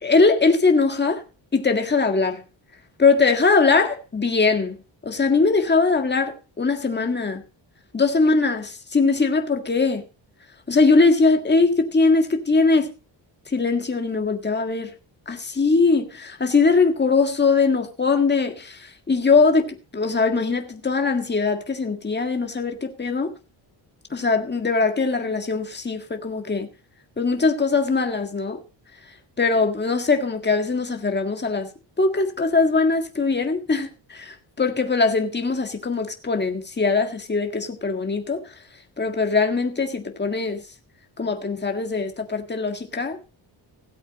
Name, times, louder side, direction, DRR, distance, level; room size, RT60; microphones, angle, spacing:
voice 1, 0.0-1.2 1.5-2.4 3.0-4.8 5.0-7.4 7.9-10.0 10.7-12.9 13.5-14.9 15.3-23.3 24.1-26.7 27.2-28.6 29.4-31.7 32.0-38.4 39.0-40.6 41.2-43.2, left 4 dB, 20° left, 1.7 m, -21 dB
17.0 x 8.1 x 4.2 m
wide cardioid pair, 130°, 47 cm